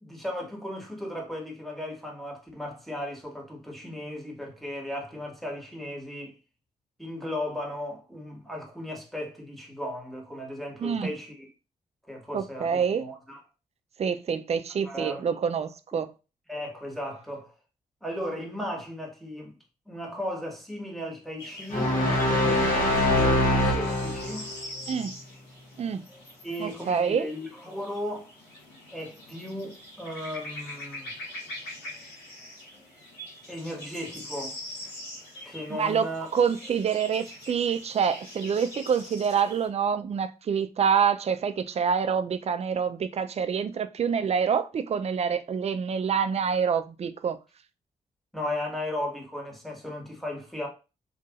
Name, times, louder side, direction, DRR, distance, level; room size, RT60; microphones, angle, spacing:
voice 1, 0.0-6.3 7.0-11.5 12.1-13.4 14.8-15.3 16.5-17.5 18.0-19.5 19.9-24.5 26.4-28.3 28.9-31.1 33.5-34.6 35.4-36.3 48.3-50.7, left 1 dB, ahead, 1.3 m, -36 dB
voice 2, 12.3-13.1 14.0-16.1 24.9-25.2 25.8-26.0 26.6-27.3 35.7-36.1 36.3-47.4, right 7 dB, 40° right, 0.4 m, -26 dB
sound 1, 21.4-39.7, left 1 dB, 85° left, 1.4 m, -44 dB
sound 2, 21.7-24.5, left 1 dB, 55° left, 1.1 m, -23 dB
2.8 x 2.5 x 2.4 m
supercardioid pair, 40°, 17 cm